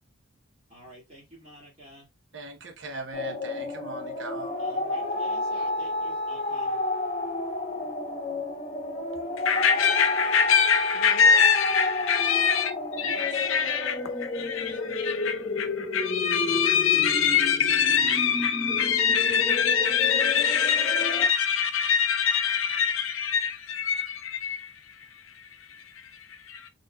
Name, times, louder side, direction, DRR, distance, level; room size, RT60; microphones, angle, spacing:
voice 1, 0.7-2.1 4.6-6.8 13.0-13.5, right 1 dB, 30° right, 1.8 m, -46 dB
voice 2, 2.3-4.6, right 3 dB, 60° right, 0.8 m, -40 dB
sound 1, 3.1-21.3, left 2 dB, 30° left, 0.8 m, -31 dB
voice 3, 9.4-26.7, left 7 dB, 75° left, 0.7 m, -24 dB
4.2 x 3.4 x 2.3 m
head